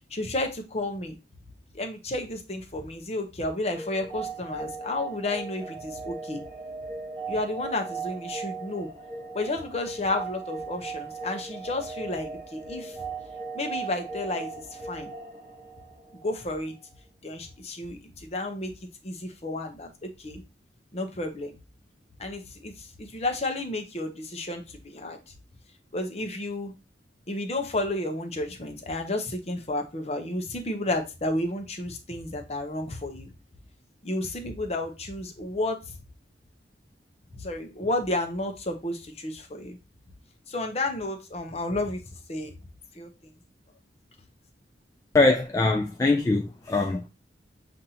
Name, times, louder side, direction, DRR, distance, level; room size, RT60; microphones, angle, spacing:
voice 1, 0.1-1.2 1.7-6.4 7.3-8.9 9.3-13.0 13.5-15.1 16.2-16.7 17.2-18.7 19.0-20.4 20.9-21.5 22.2-25.2 25.9-26.7 27.3-33.3 34.0-35.9 37.4-39.8 40.5-42.0 42.3-42.5 42.9-43.1, left 2 dB, 35° left, 0.7 m, -31 dB
sound 1, 3.7-16.5, right 4 dB, 30° right, 1.0 m, -38 dB
voice 2, 45.1-47.0, left 3 dB, 20° left, 0.3 m, -22 dB
7.1 x 2.6 x 2.7 m
head